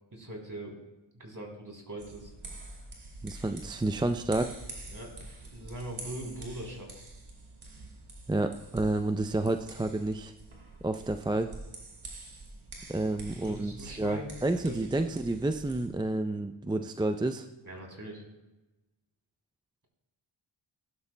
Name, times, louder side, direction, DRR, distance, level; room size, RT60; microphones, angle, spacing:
voice 1, 0.1-0.8 1.1-2.3 4.9-5.1 5.5-6.9 12.9-14.4 14.6-15.1 17.6-18.2, right 1 dB, 40° right, 0 dB, 3.4 m, -42 dB
sound 1, 2.0-15.9, right 2 dB, 85° right, 2.4 m, -47 dB
voice 2, 3.2-4.5 8.3-10.3 10.8-11.5 12.9-17.5, right 2 dB, 10° right, 7 dB, 0.4 m, -30 dB
16.5 x 11.5 x 2.2 m, 1.1 s
cardioid pair, 55°, 48 cm